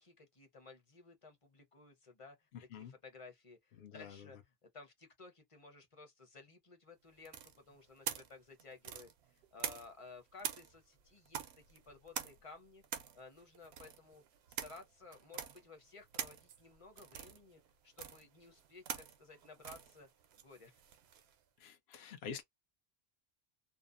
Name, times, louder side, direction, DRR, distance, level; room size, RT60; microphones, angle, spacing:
voice 1, 0.0-12.8 13.1-14.2 14.6-20.1 20.4-20.8, left 3 dB, 35° left, 0.7 m, -56 dB
voice 2, 3.8-4.3 21.6-22.4, left 6 dB, 80° left, 0.9 m, -47 dB
sound 1, 7.2-10.1 10.4-21.3, right 8 dB, 80° right, 0.8 m, -46 dB
2.6 x 2.0 x 2.4 m
omnidirectional pair, 1.1 m